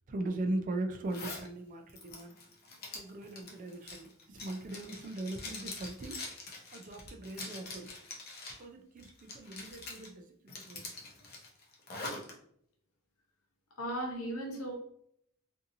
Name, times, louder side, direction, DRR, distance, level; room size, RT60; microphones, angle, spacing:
voice 1, 0.1-2.4 2.9-6.2 6.7-7.9 8.6-10.8, right 2 dB, 35° right, 5 dB, 0.3 m, -39 dB
Zipper (clothing), 1.1-1.5 1.9-8.6 9.0-10.1 10.5-12.3, left 3 dB, 45° left, 0.7 m, -44 dB
voice 2, 13.8-14.8, right 1 dB, 75° left, 1 dB, 0.8 m, -36 dB
2.7 x 2.6 x 2.6 m, 0.70 s
head